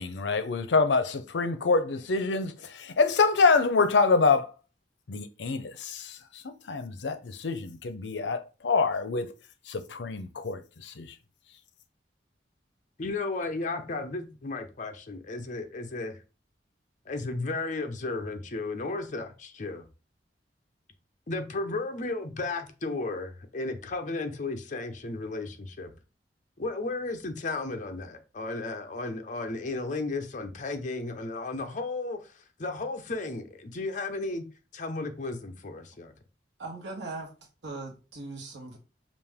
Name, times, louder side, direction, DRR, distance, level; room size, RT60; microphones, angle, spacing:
voice 1, 0.0-2.5 2.8-4.5 5.1-6.1 6.4-9.3 9.7-11.0, left 4 dB, 85° left, 0.6 m, -26 dB
voice 2, 13.0-16.2 17.1-19.8 21.3-25.9 26.6-32.3 32.6-34.4 34.7-36.1, left 3 dB, 45° left, 0.7 m, -34 dB
voice 3, 36.6-37.3 37.6-38.8, right 3 dB, 85° right, 1.2 m, -39 dB
5.2 x 2.6 x 3.5 m
head